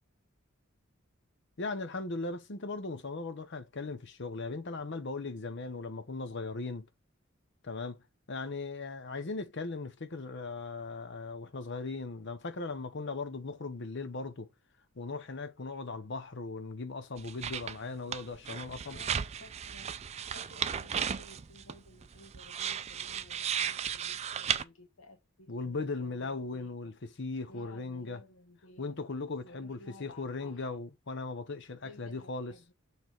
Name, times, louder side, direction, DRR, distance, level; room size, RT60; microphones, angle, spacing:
voice 1, 1.6-6.9 7.6-8.0 8.3-14.5 15.0-19.0 25.5-28.2 28.8-32.5, left 3 dB, 55° left, 0.8 m, -38 dB
sound 1, 17.2-17.8 18.1-24.6, right 8 dB, 30° right, 0.3 m, -35 dB
voice 2, 18.8-20.0 20.3-26.9 27.5-29.0 29.4-30.7 31.8-32.7, left 2 dB, 75° left, 1.0 m, -55 dB
6.7 x 3.4 x 4.4 m
head